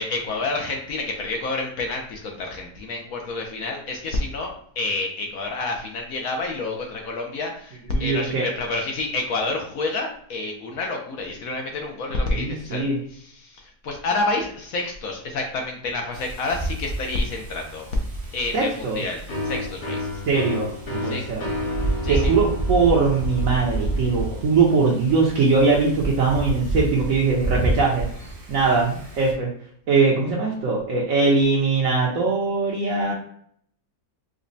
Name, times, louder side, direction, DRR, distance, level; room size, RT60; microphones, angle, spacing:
voice 1, 0.0-17.9 18.3-20.1 21.0-21.2 22.0-22.3 32.9-33.1, left 2 dB, 70° left, 1 dB, 1.0 m, -29 dB
voice 2, 7.9-8.5 12.2-13.0 18.5-19.0 20.3-20.7 21.0-21.4 22.1-28.1 28.5-29.5 29.9-33.1, right 4 dB, 60° right, -3 dB, 1.1 m, -21 dB
Wind, 16.1-29.3, right 2 dB, 35° right, 0.6 m, -30 dB
sound 1, 19.3-26.8, left 2 dB, 45° left, 0.7 m, -33 dB
5.0 x 2.2 x 2.6 m, 0.62 s
omnidirectional pair, 1.7 m